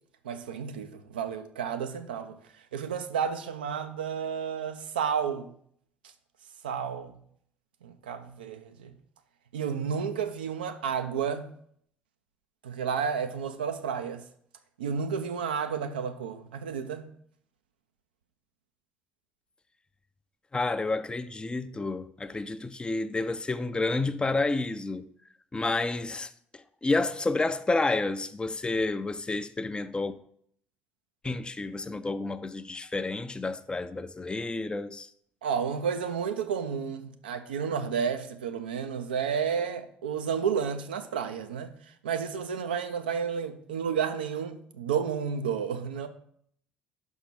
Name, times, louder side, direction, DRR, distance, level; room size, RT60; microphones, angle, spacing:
voice 1, 0.2-2.4 2.7-5.5 6.6-7.1 7.8-8.9 9.5-11.5 12.6-14.2 14.8-17.1 35.4-41.7 42.0-46.1, right 7 dB, 80° right, 0.5 m, -31 dB
voice 2, 20.5-25.1 25.5-26.3 26.8-30.1 31.2-35.1, left 3 dB, 20° left, 0.5 m, -30 dB
5.9 x 5.4 x 6.0 m
figure-of-eight pair, 50°, 5 cm